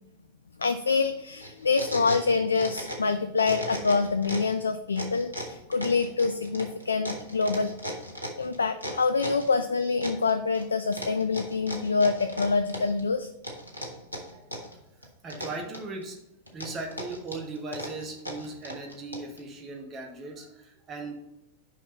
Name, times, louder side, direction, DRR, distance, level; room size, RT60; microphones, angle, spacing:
voice 1, 0.6-7.7 8.4-13.3, left 4 dB, 75° left, 9 dB, 0.4 m, -26 dB
sound 1, 1.4-3.1 3.4-4.6 5.0-9.5 10.0-10.6 10.9-13.0 13.4-14.8 15.0-16.0 16.5-19.4, equal, 90° right, 1.4 m, -37 dB
voice 2, 14.3-16.2 16.5-21.1, right 3 dB, 25° right, 2 dB, 1.5 m, -39 dB
6.4 x 5.4 x 4.0 m, 0.89 s
figure-of-eight pair, 90°, 0 cm